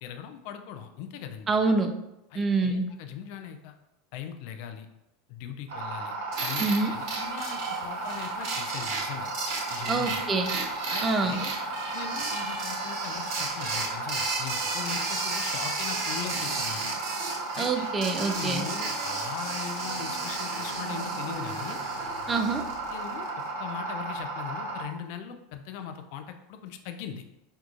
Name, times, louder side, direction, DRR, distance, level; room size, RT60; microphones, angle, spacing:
voice 1, 0.0-1.5 2.3-3.8 4.1-4.9 5.3-6.1 6.4-9.3 9.7-10.2 10.9-11.5 11.9-16.8 17.5-17.9 18.2-21.8 22.9-23.3 23.6-27.2, left 8 dB, 65° left, 7 dB, 0.4 m, -40 dB
voice 2, 1.5-1.9 2.4-2.9 6.6-6.9 9.9-10.5 11.0-11.4 17.6-18.7 22.3-22.6, right 3 dB, 25° right, 6 dB, 0.4 m, -26 dB
sound 1, 5.7-24.8, right 2 dB, 80° right, 0.8 m, -35 dB
sound 2, 6.3-23.3, right 3 dB, 50° right, 1.1 m, -34 dB
4.5 x 2.3 x 2.5 m, 0.92 s
hypercardioid pair, 100°, 0 cm